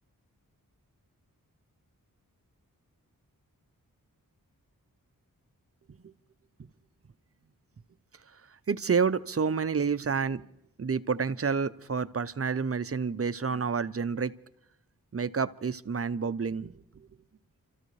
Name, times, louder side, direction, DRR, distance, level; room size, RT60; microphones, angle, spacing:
voice 1, 8.7-10.4 10.8-14.3 15.1-17.1, right 5 dB, 40° right, 14 dB, 0.7 m, -29 dB
29.5 x 14.0 x 3.3 m, 0.85 s
cardioid pair, 60°, 35 cm